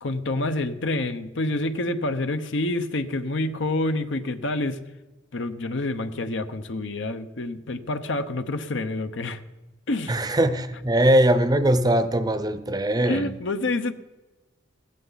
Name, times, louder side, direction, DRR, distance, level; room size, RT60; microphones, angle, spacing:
voice 1, 0.0-4.8 5.3-9.4 9.9-10.2 13.0-13.9, left 2 dB, 65° left, 0.8 m, -27 dB
voice 2, 10.1-13.4, right 1 dB, 20° right, 0.7 m, -21 dB
16.0 x 14.0 x 4.0 m
head